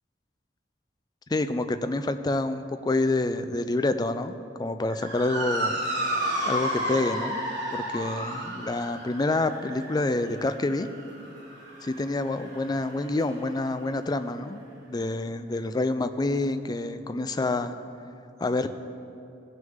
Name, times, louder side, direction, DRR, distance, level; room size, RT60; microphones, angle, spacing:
voice 1, 1.3-5.8 6.4-7.4 7.7-10.9 11.8-14.6 14.9-17.7 18.4-18.7, left 2 dB, 20° left, 10 dB, 0.4 m, -27 dB
Motor vehicle (road) / Siren, 4.9-13.5, right 1 dB, 70° right, 2.5 m, -32 dB
16.5 x 6.3 x 3.6 m, 2.6 s
head